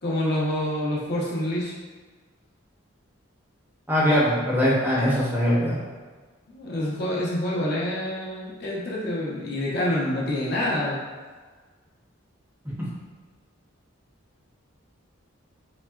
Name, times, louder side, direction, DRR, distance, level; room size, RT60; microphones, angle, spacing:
voice 1, 0.0-1.7 6.5-11.0, left 1 dB, 50° left, -5 dB, 0.9 m, -27 dB
voice 2, 3.9-5.8 12.6-12.9, equal, 10° right, -6 dB, 0.7 m, -22 dB
4.1 x 3.2 x 2.4 m, 1.4 s
head